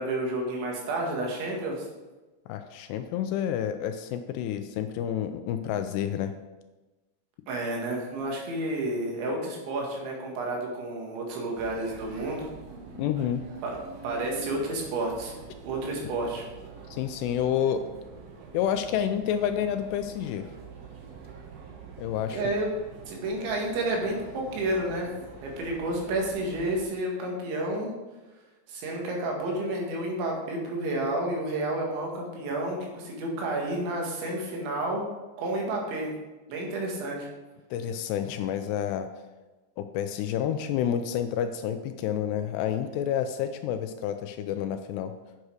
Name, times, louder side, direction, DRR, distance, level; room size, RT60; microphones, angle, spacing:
voice 1, 0.0-1.9 7.5-12.5 13.6-13.8 14.0-15.3 15.6-16.4 22.3-22.7 23.1-25.1 25.4-27.9 28.7-35.1 35.4-36.1 36.5-37.3, right 1 dB, 90° right, -1 dB, 4.2 m, -30 dB
voice 2, 2.5-6.3 13.0-13.4 16.9-17.9 18.5-20.5 22.0-22.4 37.7-39.1 39.8-45.1, left 9 dB, 80° left, 8 dB, 2.5 m, -29 dB
sound 1, 11.5-26.9, right 5 dB, 70° right, 2.6 m, -45 dB
8.4 x 7.9 x 4.7 m, 1.2 s
omnidirectional pair, 5.1 m